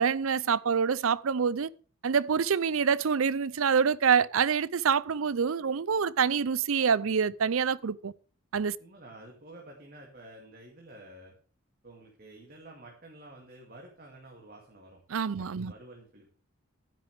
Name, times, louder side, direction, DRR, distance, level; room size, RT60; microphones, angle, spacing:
voice 1, 0.0-1.7 2.0-8.1 8.5-8.8 15.1-15.7, right 6 dB, 80° right, 0.5 m, -26 dB
voice 2, 8.8-11.3 11.8-15.0 15.3-16.3, right 1 dB, 45° right, 2.4 m, -50 dB
12.5 x 10.0 x 3.4 m
head